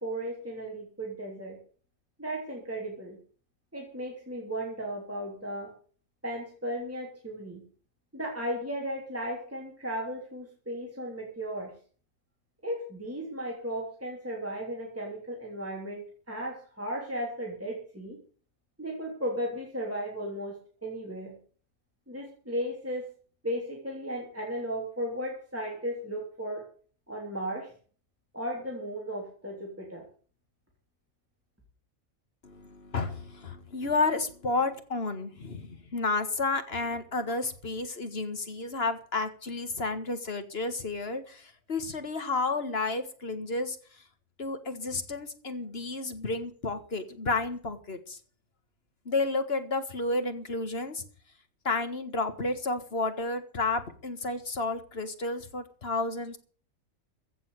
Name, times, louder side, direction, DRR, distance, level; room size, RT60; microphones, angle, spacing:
voice 1, 0.0-1.6 2.2-3.2 3.7-5.7 6.2-7.6 8.1-11.7 12.6-18.2 18.8-21.4 22.1-23.0 23.4-26.7 27.1-27.7 28.3-30.0, equal, 10° right, -1 dB, 3.2 m, -35 dB
voice 2, 32.4-43.8 44.4-48.2 49.1-51.0 51.7-56.4, left 3 dB, 50° left, 9 dB, 1.9 m, -31 dB
15.5 x 7.0 x 8.0 m, 0.43 s
omnidirectional pair, 1.4 m